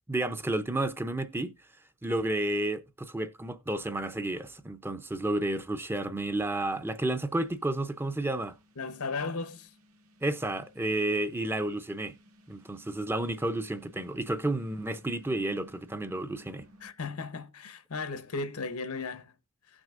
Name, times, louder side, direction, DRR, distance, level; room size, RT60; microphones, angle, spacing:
voice 1, 0.1-1.5 2.0-8.5 10.2-12.1 12.5-16.7, right 1 dB, 10° right, 0.5 m, -31 dB
sound 1, 6.5-16.9, equal, 85° right, 1.9 m, -59 dB
voice 2, 8.8-9.7 16.8-19.3, left 4 dB, 90° left, 0.9 m, -35 dB
17.5 x 6.2 x 2.5 m
head